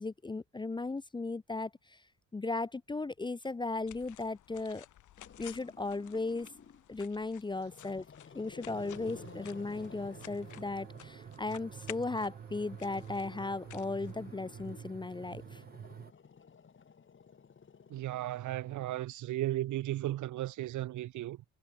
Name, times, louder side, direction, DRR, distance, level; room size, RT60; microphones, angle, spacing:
voice 1, 0.0-2.0 2.3-4.9 5.4-6.5 6.9-8.1 8.3-15.6, left 3 dB, 15° left, 0.5 m, -36 dB
sound 1, 3.4-14.7, left 13 dB, 80° left, 3.2 m, -55 dB
Growling, 5.2-6.9 7.5-11.6 12.6-19.1, left 6 dB, 40° left, 3.8 m, -55 dB
sound 2, 8.7-16.1, right 8 dB, 30° right, 0.5 m, -48 dB
voice 2, 17.9-21.4, right 14 dB, 75° right, 1.1 m, -35 dB
cardioid pair, 90°, 30 cm